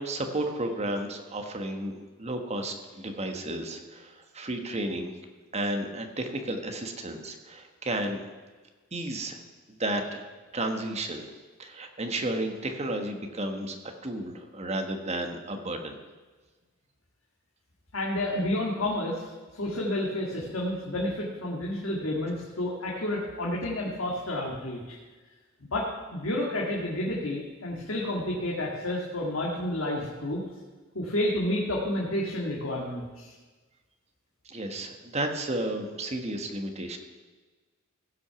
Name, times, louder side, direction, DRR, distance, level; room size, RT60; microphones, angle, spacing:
voice 1, 0.0-5.1 5.5-8.2 8.9-9.4 9.7-10.2 10.5-11.3 11.6-16.0 34.4-37.0, right 1 dB, 30° right, 5 dB, 1.4 m, -32 dB
voice 2, 17.9-19.3 19.5-25.0 25.7-30.4 30.9-33.3, left 1 dB, 80° left, -3 dB, 2.0 m, -30 dB
16.0 x 6.2 x 6.9 m, 1.3 s
head